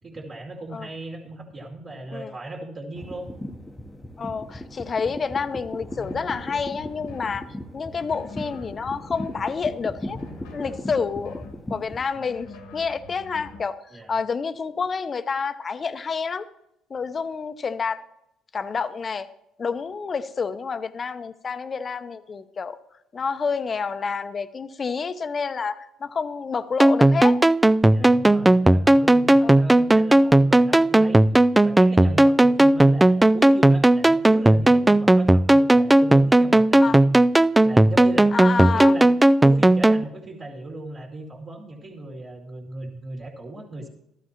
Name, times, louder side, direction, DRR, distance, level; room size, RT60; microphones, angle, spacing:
voice 1, 0.0-3.3 13.9-14.2 27.9-31.3 31.6-37.2 37.6-39.1 39.4-43.9, right 2 dB, 40° right, -3 dB, 2.3 m, -37 dB
sound 1, 3.0-12.1, left 1 dB, 10° left, 0.9 m, -37 dB
voice 2, 4.2-7.5 7.7-10.2 10.5-16.5 16.9-18.0 18.5-19.3 19.6-22.8 23.1-27.4 28.0-28.2 29.4-29.6 31.6-31.7 36.8-37.0 38.3-38.9, left 5 dB, 40° left, 11 dB, 0.7 m, -29 dB
sound 2, 5.9-7.4 7.9-9.5 10.0-11.6 12.1-13.7, left 2 dB, 80° left, 1.4 m, -44 dB
sound 3, 26.8-40.0, right 1 dB, 10° right, 0.3 m, -16 dB
13.5 x 12.0 x 2.9 m, 0.82 s
hypercardioid pair, 60°, 0 cm